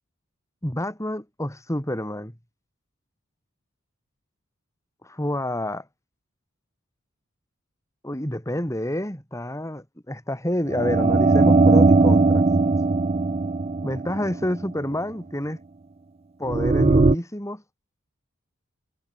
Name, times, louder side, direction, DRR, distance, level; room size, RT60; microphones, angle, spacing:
voice 1, 0.6-2.3 5.0-5.9 8.0-12.4 13.8-15.6 16.4-17.6, left 1 dB, 15° left, 3.9 m, -28 dB
sound 1, 10.7-14.7 16.5-17.1, right 3 dB, 30° right, 0.5 m, -19 dB
head